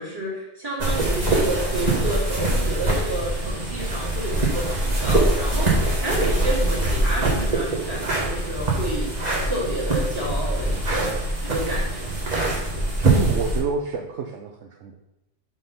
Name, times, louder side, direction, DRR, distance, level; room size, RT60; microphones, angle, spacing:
voice 1, 0.0-9.1 9.4-12.2, right 1 dB, 20° right, -7 dB, 2.4 m, -30 dB
sound 1, 0.8-13.6, right 2 dB, 35° right, 1.4 m, -23 dB
voice 2, 13.0-14.9, right 5 dB, 70° right, 2 dB, 0.9 m, -28 dB
6.0 x 3.7 x 5.6 m, 0.90 s
omnidirectional pair, 1.3 m